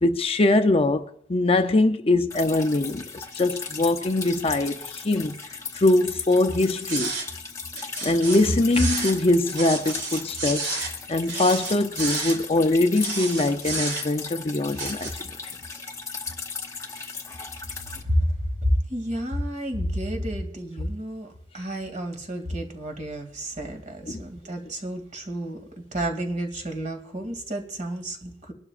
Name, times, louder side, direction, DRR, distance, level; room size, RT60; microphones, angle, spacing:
voice 1, 0.0-5.4 5.7-7.1 8.0-10.8 11.1-15.3 24.0-24.2, left 2 dB, 35° left, 0.6 m, -22 dB
Drip, 2.3-18.0, left 5 dB, 20° left, 1.0 m, -37 dB
sound 1, 6.9-7.3 7.8-9.2 9.5-10.9 11.3-12.4 12.9-14.3 14.7-15.1, right 3 dB, 65° right, 3.7 m, -30 dB
voice 2, 18.6-21.3 21.5-25.6 25.9-28.5, equal, 45° right, 2.5 m, -30 dB
23.5 x 12.0 x 2.5 m
head